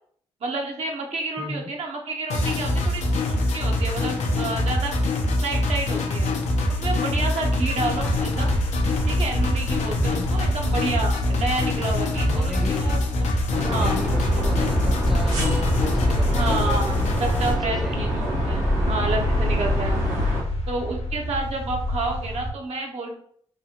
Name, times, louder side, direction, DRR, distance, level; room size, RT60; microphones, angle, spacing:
voice 1, 0.4-3.0 3.3-4.9 5.4-6.3 6.8-8.5 9.1-13.3 13.7-14.0 14.3-14.5 16.3-20.2 20.7-23.2, right 2 dB, 60° right, 1 dB, 0.7 m, -30 dB
voice 2, 1.4-1.7 10.0-10.3 12.2-12.8 13.5-16.9 17.4-18.0, equal, ahead, 3 dB, 0.6 m, -35 dB
sound 1, 2.3-17.5, left 1 dB, 70° left, 0.5 m, -24 dB
sound 2, 7.9-22.5, left 1 dB, 55° left, 0.9 m, -30 dB
sound 3, 13.5-20.4, equal, 85° right, 1.0 m, -25 dB
3.0 x 2.3 x 2.8 m, 0.63 s
supercardioid pair, 50°, 12 cm